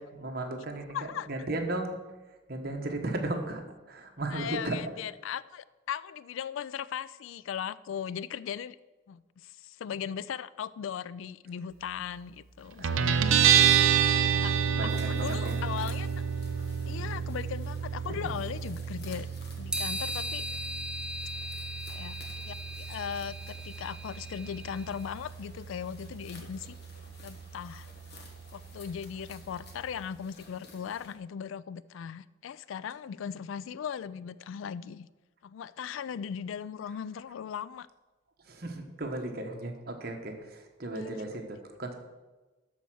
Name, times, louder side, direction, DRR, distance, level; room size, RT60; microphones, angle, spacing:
voice 1, 0.0-1.9 2.5-4.8 12.8-13.2 13.6-14.1 14.8-15.6 16.9-17.2 18.1-18.4 38.4-41.9, right 2 dB, 50° right, 3 dB, 1.2 m, -36 dB
voice 2, 0.9-1.3 4.3-8.8 9.1-13.9 14.4-14.5 14.8-16.1 16.9-19.3 19.6-20.5 21.9-22.2 22.5-26.8 27.2-27.9 28.5-35.1 35.4-37.9, left 8 dB, 75° left, 18 dB, 0.3 m, -38 dB
Guitar, 12.8-30.0, right 8 dB, 85° right, 0.6 m, -30 dB
sound 1, 14.9-31.1, left 2 dB, 55° left, 1.5 m, -53 dB
sound 2, 19.7-25.0, equal, 5° right, 0.5 m, -38 dB
12.5 x 4.5 x 6.1 m, 1.2 s
head